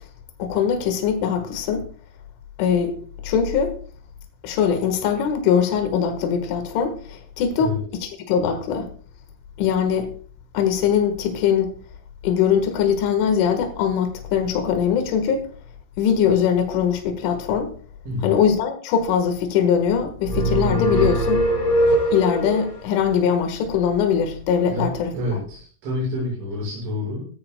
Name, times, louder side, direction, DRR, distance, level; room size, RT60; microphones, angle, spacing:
voice 1, 0.4-1.8 2.6-3.0 3.2-3.7 4.4-7.7 8.0-8.9 9.6-10.1 10.5-11.7 12.2-15.4 16.0-17.7 18.2-21.5 22.1-25.1, left 7 dB, 85° left, 4.1 m, -21 dB
sound 1, 20.2-22.7, right 1 dB, 35° left, 3.5 m, -21 dB
voice 2, 24.7-27.3, left 2 dB, 80° right, 8.3 m, -28 dB
20.0 x 13.5 x 2.3 m
omnidirectional pair, 5.4 m